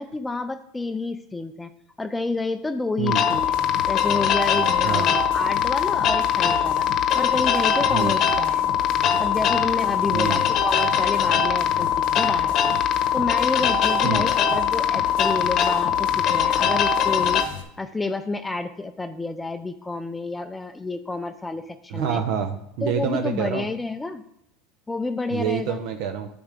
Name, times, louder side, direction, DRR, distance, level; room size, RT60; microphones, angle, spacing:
voice 1, 0.0-1.7 2.0-3.5 3.9-6.9 7.1-8.7 9.2-11.9 12.2-12.7 13.1-17.4 17.8-22.2 22.8-24.2 24.9-25.8, left 3 dB, 10° left, 8 dB, 0.5 m, -29 dB
sound 1, 3.1-17.4, left 8 dB, 45° left, 1.0 m, -21 dB
sound 2, 3.3-17.6, left 7 dB, 85° left, 1.4 m, -37 dB
voice 2, 21.9-23.7 25.3-26.3, right 7 dB, 65° right, 6 dB, 0.7 m, -27 dB
9.7 x 3.5 x 6.6 m, 0.79 s
supercardioid pair, 125°, 0 cm